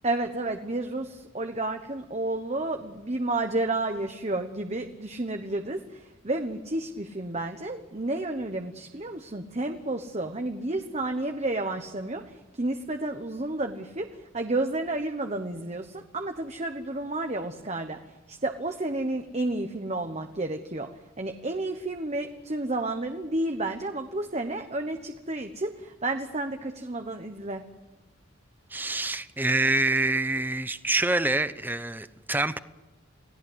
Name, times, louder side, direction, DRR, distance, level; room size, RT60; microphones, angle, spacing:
voice 1, 0.0-18.0 18.3-20.9 21.2-27.6, right 2 dB, 30° right, 1.1 m, -31 dB
voice 2, 28.7-32.6, right 2 dB, 10° right, 0.8 m, -26 dB
29.0 x 17.5 x 8.0 m
head